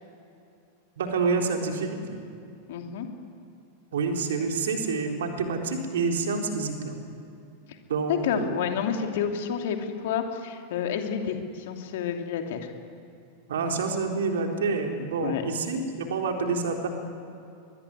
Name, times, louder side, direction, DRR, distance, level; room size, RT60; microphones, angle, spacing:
voice 1, 1.0-2.2 3.9-6.9 7.9-8.6 13.5-16.9, right 4 dB, 60° right, 3 dB, 3.8 m, -28 dB
voice 2, 2.7-3.1 8.1-12.7 15.2-15.4, left 8 dB, 55° left, 4 dB, 2.9 m, -29 dB
23.5 x 22.5 x 9.8 m, 2.6 s
figure-of-eight pair, 90°, 0 cm